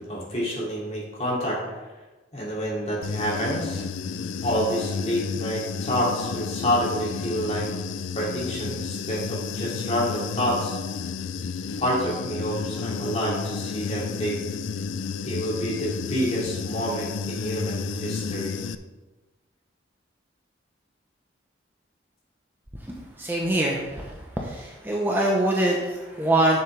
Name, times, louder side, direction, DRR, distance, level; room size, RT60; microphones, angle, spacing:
voice 1, 0.0-1.6 2.3-3.8 4.4-7.7 8.1-10.8 11.8-14.4 15.2-18.5, equal, 35° left, -4 dB, 2.6 m, -28 dB
Human voice / Buzz, 3.0-18.8, left 5 dB, 80° left, 0.4 m, -32 dB
voice 2, 22.8-26.6, right 1 dB, 10° right, -1 dB, 0.9 m, -24 dB
10.5 x 7.1 x 3.4 m, 1.2 s
head